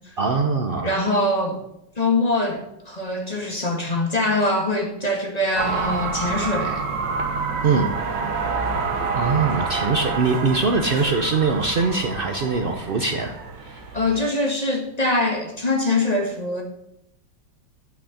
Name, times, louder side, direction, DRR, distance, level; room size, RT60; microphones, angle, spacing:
voice 1, 0.2-0.9 7.6-7.9 9.1-13.3 13.6-13.8, right 4 dB, 85° right, 4 dB, 0.4 m, -22 dB
voice 2, 0.8-1.6 2.0-6.8 13.9-16.6, left 2 dB, 20° left, 1 dB, 1.7 m, -23 dB
sound 1, 5.5-14.2, right 4 dB, 65° right, 1.8 m, -28 dB
8.4 x 6.3 x 7.2 m, 0.80 s
omnidirectional pair, 2.1 m